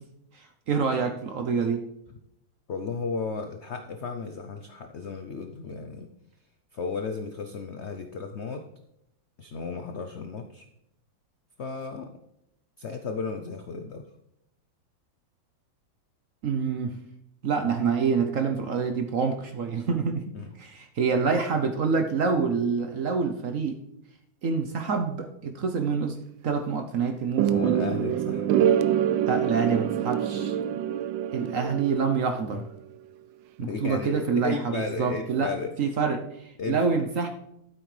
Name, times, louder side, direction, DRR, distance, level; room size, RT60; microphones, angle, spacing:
voice 1, 0.3-1.8 16.4-16.9 17.4-20.2 20.6-23.8 24.4-26.2 26.4-28.0 29.3-30.6 31.3-32.6 33.6-35.5 35.8-37.3, right 5 dB, 55° right, 5 dB, 1.0 m, -27 dB
voice 2, 2.7-6.1 6.7-8.6 9.4-10.7 11.6-12.1 12.8-14.1 20.3-20.5 27.4-28.7 32.5-32.6 33.6-35.7 36.6-37.0, left 4 dB, 75° left, 6 dB, 0.6 m, -34 dB
sound 1, 27.4-32.5, right 10 dB, 80° right, 1.2 m, -25 dB
13.0 x 7.9 x 3.3 m, 0.81 s
omnidirectional pair, 2.0 m